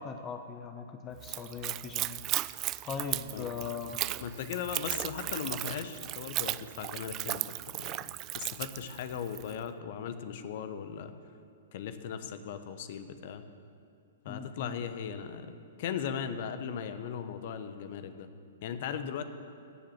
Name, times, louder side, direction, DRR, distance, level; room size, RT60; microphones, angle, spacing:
voice 1, 0.0-2.2 2.8-4.0 14.3-14.8 19.0-19.2, left 6 dB, 25° left, 7 dB, 0.8 m, -40 dB
Splash splatter / Trickle dribble, 1.2-9.5, right 16 dB, 30° right, 0.3 m, -36 dB
voice 2, 4.2-8.0 8.3-11.1 11.7-13.4 14.2-18.3 18.6-19.2, left 8 dB, 50° left, 10 dB, 1.0 m, -38 dB
15.0 x 7.7 x 9.1 m, 2.4 s
figure-of-eight pair, 110°, 0 cm